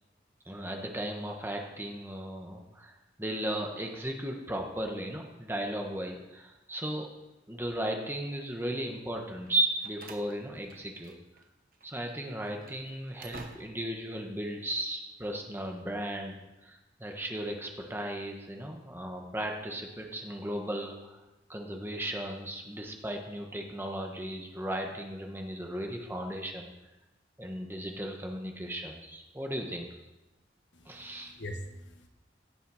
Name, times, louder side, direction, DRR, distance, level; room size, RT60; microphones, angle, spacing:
voice 1, 0.4-7.1 7.5-11.1 11.8-21.2 21.5-26.7 27.4-29.9 30.8-31.3, right 1 dB, 10° right, 2 dB, 1.3 m, -36 dB
Slam, 9.4-11.5 11.7-11.9 12.4-14.0, right 3 dB, 50° right, 1.1 m, -51 dB
voice 2, 30.7-32.1, left 1 dB, 90° left, 5 dB, 1.4 m, -43 dB
17.0 x 6.8 x 4.9 m, 1.0 s
head